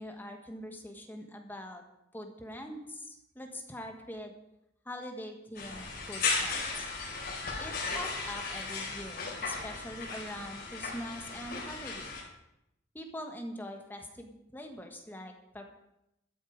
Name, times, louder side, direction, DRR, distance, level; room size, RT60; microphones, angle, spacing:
voice 1, 0.0-1.8 2.1-4.3 4.8-6.9 7.6-12.1 12.9-15.7, equal, 10° left, 3 dB, 1.3 m, -43 dB
sound 1, 5.5-12.2, left 4 dB, 50° left, 4.4 m, -36 dB
13.0 x 11.0 x 5.1 m, 0.85 s
head